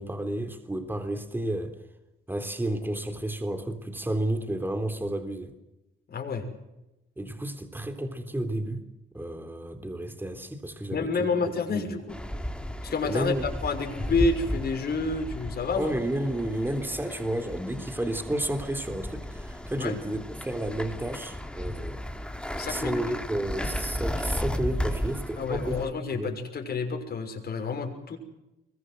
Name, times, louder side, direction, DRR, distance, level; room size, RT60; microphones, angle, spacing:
voice 1, 0.0-1.8 2.3-5.5 7.2-8.8 9.1-11.3 11.7-11.9 13.0-13.4 15.8-22.0 22.7-25.8 26.1-26.3, right 1 dB, 10° right, 3.5 m, -31 dB
voice 2, 6.1-6.4 10.9-12.2 12.8-13.3 13.6-15.9 19.8-20.0 22.6-23.0 25.4-28.2, left 4 dB, 50° left, 6.2 m, -29 dB
sound 1, 12.1-25.9, equal, 5° left, 3.0 m, -34 dB
25.0 x 22.5 x 8.0 m
cardioid pair, 90°, 20 cm